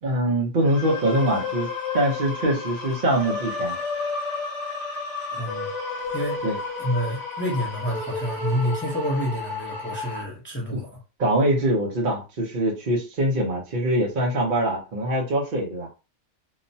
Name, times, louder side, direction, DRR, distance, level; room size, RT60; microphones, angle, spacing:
voice 1, 0.0-3.7 6.4-6.6 10.7-10.8 11.2-15.9, right 1 dB, 45° right, 0.8 m, -23 dB
sound 1, 0.6-10.2, left 4 dB, 35° left, 1.1 m, -31 dB
voice 2, 5.3-5.7 6.1-6.4 6.8-11.0, equal, 15° left, 0.5 m, -28 dB
2.9 x 2.1 x 2.6 m
omnidirectional pair, 1.3 m